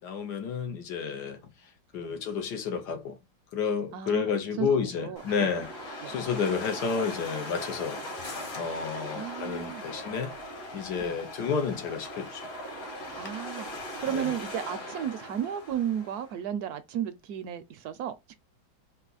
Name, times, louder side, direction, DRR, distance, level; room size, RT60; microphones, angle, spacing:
voice 1, 0.0-3.2 3.5-5.7 6.1-8.0 8.5-10.3 10.7-12.5 14.1-14.3, left 6 dB, 75° left, 1.6 m, -31 dB
sound 1, 5.2-16.3, left 1 dB, 55° left, 2.1 m, -40 dB
sound 2, 8.2-13.4, left 3 dB, 35° left, 0.5 m, -50 dB
voice 2, 9.1-9.8 11.0-11.2 13.1-13.7 14.0-18.4, right 9 dB, 70° right, 1.0 m, -33 dB
4.1 x 2.8 x 3.9 m
omnidirectional pair, 1.8 m